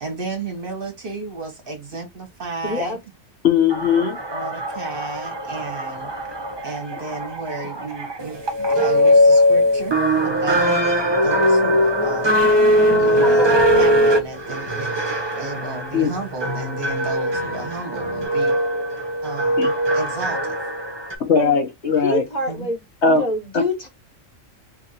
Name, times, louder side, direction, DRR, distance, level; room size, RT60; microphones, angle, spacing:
voice 1, 0.0-3.0 4.3-6.1 6.6-10.7 11.2-12.5 13.0-15.0 15.4-18.6 19.2-20.5 22.5-22.7, right 3 dB, 45° right, 1.0 m, -33 dB
voice 2, 2.6-3.0 10.8-10.9 13.2-13.9 21.3-21.6 22.0-22.8 23.1-23.9, left 1 dB, 35° left, 1.0 m, -26 dB
voice 3, 3.4-4.2 15.9-16.1 19.6-19.7 21.2-22.2 23.0-23.2 23.5-23.6, left 6 dB, 60° left, 1.0 m, -18 dB
sound 1, 3.7-21.1, equal, 30° right, 0.5 m, -20 dB
sound 2, 12.4-18.3, left 3 dB, 85° left, 1.4 m, -37 dB
2.8 x 2.5 x 4.0 m
omnidirectional pair, 1.4 m